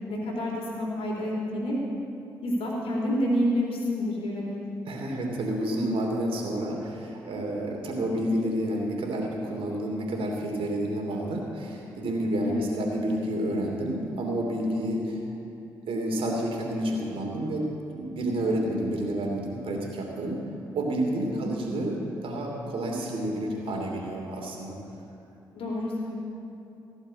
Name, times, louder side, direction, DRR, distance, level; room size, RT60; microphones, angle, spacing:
voice 1, 0.1-1.8 2.4-4.6 12.4-12.7 21.3-21.7 25.5-26.1, equal, 65° left, -2 dB, 3.9 m, -29 dB
voice 2, 4.9-15.2 15.9-20.4 20.7-24.8, right 1 dB, 65° right, 0 dB, 2.9 m, -29 dB
16.5 x 7.4 x 8.7 m, 2.8 s
hypercardioid pair, 40°, 10 cm